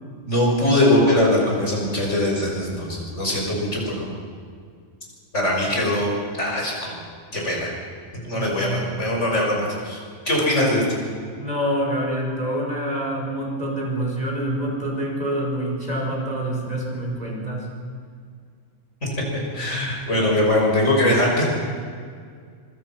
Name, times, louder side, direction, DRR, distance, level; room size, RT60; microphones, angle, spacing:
voice 1, 0.2-4.1 5.3-6.1 6.4-7.0 7.3-7.7 8.2-10.0 10.2-10.8 19.5-21.6, left 1 dB, 70° left, -2 dB, 6.5 m, -21 dB
voice 2, 8.3-8.8 11.4-17.7, right 1 dB, 35° right, -1 dB, 5.5 m, -26 dB
25.5 x 24.5 x 6.0 m, 2.1 s
omnidirectional pair, 1.3 m